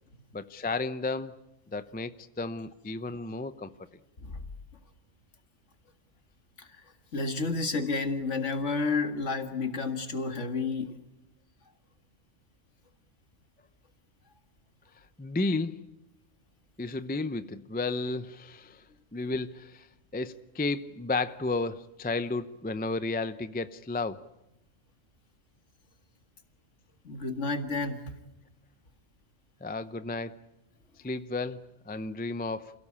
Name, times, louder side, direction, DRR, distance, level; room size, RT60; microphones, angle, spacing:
voice 1, 0.3-1.4 1.7-3.7 15.2-15.8 16.8-18.8 19.1-19.9 20.1-24.2 29.6-30.4 31.0-32.7, left 3 dB, 10° left, 0.5 m, -33 dB
voice 2, 7.1-10.9 27.0-28.0, left 3 dB, 65° left, 2.2 m, -31 dB
28.0 x 17.0 x 8.7 m
omnidirectional pair, 1.3 m